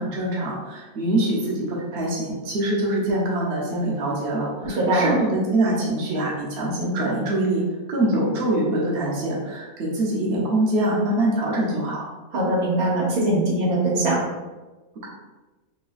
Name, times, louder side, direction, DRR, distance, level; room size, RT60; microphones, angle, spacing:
voice 1, 0.0-7.6 7.9-12.1 15.0-15.1, right 1 dB, 50° right, -4 dB, 0.9 m, -24 dB
voice 2, 4.6-5.1 12.3-14.2, right 1 dB, 85° right, -4 dB, 1.4 m, -21 dB
3.2 x 2.8 x 2.4 m, 1.2 s
omnidirectional pair, 1.5 m